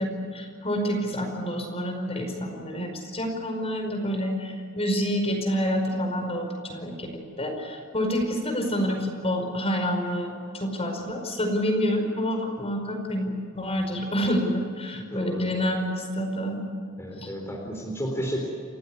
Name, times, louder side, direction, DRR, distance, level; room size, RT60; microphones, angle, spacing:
voice 1, 0.0-7.1 7.4-16.6 17.1-17.3, equal, 30° left, 3 dB, 5.1 m, -28 dB
voice 2, 13.7-14.0 14.9-15.8 17.0-18.4, equal, 10° left, -1 dB, 4.0 m, -33 dB
29.5 x 15.5 x 9.7 m, 2.3 s
head